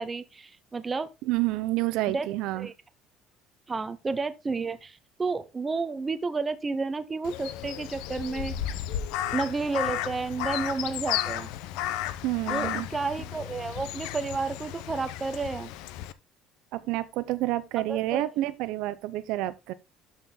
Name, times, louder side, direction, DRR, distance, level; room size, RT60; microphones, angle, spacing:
voice 1, 0.0-1.1 2.1-2.3 2.5-2.7 3.7-8.5 9.3-11.5 12.5-15.7 17.8-18.3, right 4 dB, 15° right, 0.6 m, -31 dB
voice 2, 1.2-2.7 12.2-12.9 16.7-19.7, right 17 dB, 70° right, 0.7 m, -29 dB
Crow, 7.2-16.1, left 11 dB, 85° left, 0.7 m, -33 dB
12.5 x 4.5 x 3.7 m
cardioid pair, 155°, 0 cm